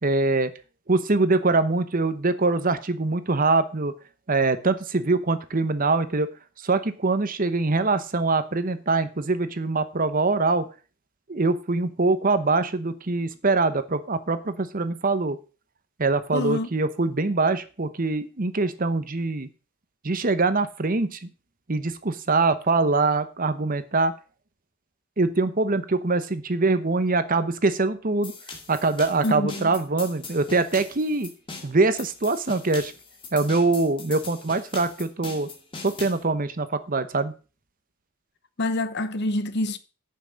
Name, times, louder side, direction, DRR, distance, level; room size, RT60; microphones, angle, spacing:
voice 1, 0.0-0.5 0.9-3.9 4.3-6.3 6.6-10.7 11.3-15.4 16.0-19.5 20.0-21.3 21.7-24.1 25.2-28.3 28.7-31.3 31.6-32.9 33.3-35.5 35.8-37.3, right 3 dB, 40° right, 0.9 m, -23 dB
voice 2, 16.3-16.7 29.2-29.7 38.6-39.8, left 1 dB, 50° left, 0.9 m, -26 dB
sound 1, 28.2-36.2, left 4 dB, 25° left, 2.0 m, -41 dB
11.0 x 5.8 x 6.3 m
head